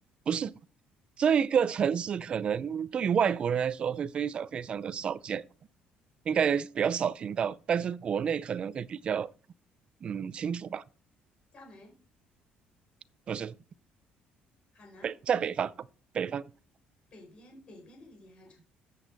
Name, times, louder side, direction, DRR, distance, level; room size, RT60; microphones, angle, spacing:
voice 1, 1.2-5.4 6.3-9.3 10.0-10.8 13.3-13.5 15.0-15.7 16.1-16.4, right 7 dB, 30° right, 0.4 m, -29 dB
voice 2, 11.5-12.0 14.7-15.2 17.1-18.6, left 1 dB, 35° left, 4.9 m, -52 dB
14.0 x 8.2 x 4.1 m
cardioid pair, 165°, 3 cm